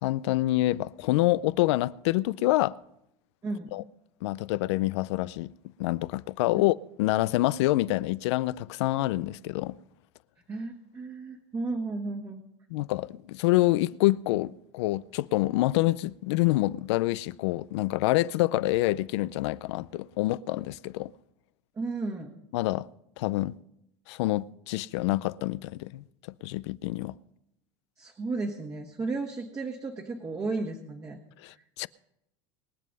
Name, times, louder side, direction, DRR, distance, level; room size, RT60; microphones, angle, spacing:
voice 1, 0.0-2.8 3.7-3.8 4.2-5.5 5.8-9.7 12.7-21.1 22.5-22.9 23.2-23.5 24.1-26.0 26.4-27.1 31.4-31.9, left 18 dB, 85° left, 0.5 m, -27 dB
voice 2, 3.4-3.7 10.5-12.4 21.7-22.4 28.0-31.2, right 3 dB, 20° right, 1.5 m, -34 dB
22.0 x 7.6 x 5.4 m
supercardioid pair, 130°, 14 cm